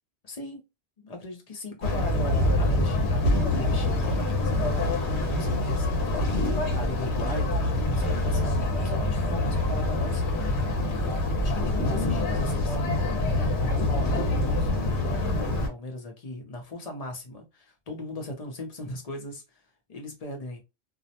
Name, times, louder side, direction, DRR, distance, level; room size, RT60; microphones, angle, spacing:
voice 1, 0.2-0.6 1.0-4.8 5.3-5.9 6.7-8.4 8.7-10.2 11.4-13.1 13.5-19.6 19.9-20.6, left 2 dB, 40° left, 0.6 m, -38 dB
sound 1, 1.8-15.7, left 1 dB, 70° left, 1.0 m, -25 dB
2.4 x 2.0 x 2.7 m
omnidirectional pair, 1.2 m